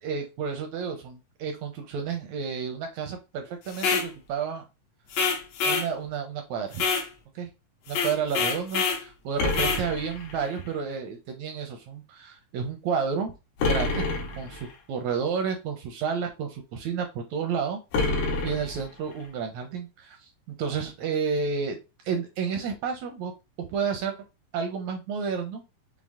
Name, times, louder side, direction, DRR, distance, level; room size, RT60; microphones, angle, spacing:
voice 1, 0.0-4.6 5.6-6.8 7.3-7.5 7.9-13.3 13.7-14.0 14.4-17.8 18.4-21.8 22.0-23.3 23.6-24.1 24.5-25.6, right 6 dB, 80° right, 5 dB, 1.6 m, -31 dB
sound 1, 3.7-4.1 5.1-5.9 6.7-7.1 7.9-9.0 9.5-9.8, left 5 dB, 70° left, 1.7 m, -26 dB
sound 2, 9.4-10.8 13.6-14.8 17.9-19.3, left 2 dB, 85° left, 2.8 m, -28 dB
6.1 x 2.1 x 3.4 m, 0.27 s
omnidirectional pair, 3.8 m